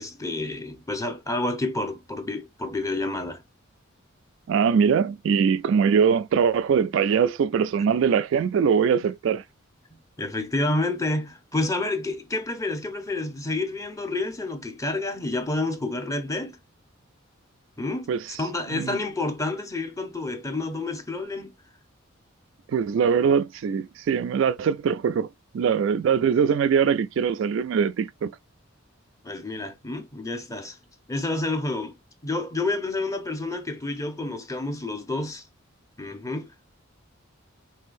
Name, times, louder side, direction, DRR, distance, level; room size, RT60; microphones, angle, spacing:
voice 1, 0.0-3.4 10.2-16.6 17.8-18.1 18.4-21.5 29.2-30.8 31.1-32.0 32.2-35.5 36.0-36.7, left 2 dB, 15° left, 0.8 m, -29 dB
voice 2, 4.5-9.4 18.1-18.4 18.7-19.0 22.7-25.3 25.5-28.3, right 6 dB, 65° right, 0.3 m, -22 dB
5.5 x 3.2 x 2.5 m
head